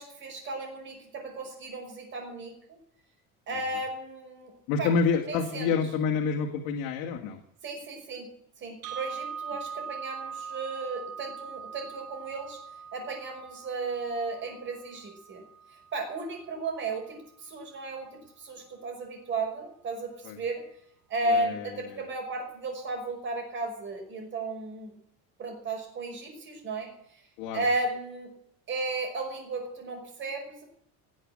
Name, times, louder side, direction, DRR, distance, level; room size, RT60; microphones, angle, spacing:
voice 1, 0.0-2.5 3.5-4.5 4.8-4.9 5.3-5.7 7.6-8.3 8.6-12.6 12.9-15.4 15.9-20.6 21.1-24.9 25.4-26.9 27.5-28.3 28.7-30.6, right 2 dB, 35° right, 2 dB, 5.5 m, -34 dB
voice 2, 4.7-7.4 20.2-20.4 21.3-22.0 27.4-27.6, left 5 dB, 80° left, 2 dB, 2.3 m, -28 dB
sound 1, 8.8-16.9, right 6 dB, 85° right, 2.4 m, -42 dB
18.5 x 8.1 x 8.7 m, 0.72 s
cardioid pair, 175°, 34 cm